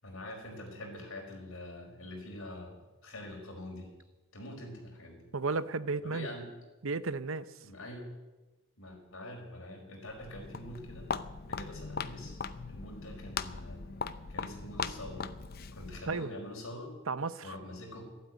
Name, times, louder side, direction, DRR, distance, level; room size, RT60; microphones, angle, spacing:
voice 1, 0.0-3.9 4.3-5.3 6.0-6.5 7.6-8.1 8.8-11.1 11.5-12.4 12.7-14.0 14.3-15.3 15.7-16.9 17.4-18.0, left 1 dB, 65° left, 0 dB, 5.0 m, -45 dB
voice 2, 5.3-6.3 6.8-7.5 16.1-16.3 17.1-17.5, right 4 dB, 65° right, 14 dB, 0.7 m, -33 dB
Walk footsteps, 10.1-16.2, left 5 dB, 45° left, 0.6 m, -39 dB
12.5 x 12.0 x 9.4 m, 1.2 s
head